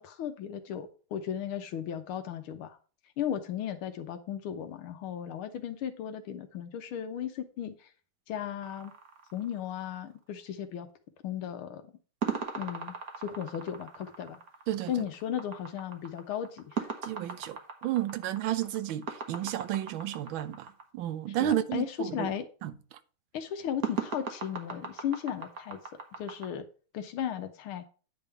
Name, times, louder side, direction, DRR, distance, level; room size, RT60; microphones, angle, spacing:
voice 1, 0.0-2.8 3.2-7.8 8.3-8.9 9.3-10.9 11.2-11.8 12.6-14.4 14.9-16.9 21.4-22.5 23.3-25.8 26.2-26.7 26.9-27.9, left 9 dB, 80° left, 1.7 m, -35 dB
sound 1, 8.6-10.0 12.2-20.8 23.8-26.5, right 6 dB, 45° right, 1.6 m, -38 dB
voice 2, 17.0-22.3 22.6-23.0, right 12 dB, 70° right, 1.4 m, -32 dB
9.6 x 3.5 x 6.8 m
omnidirectional pair, 2.4 m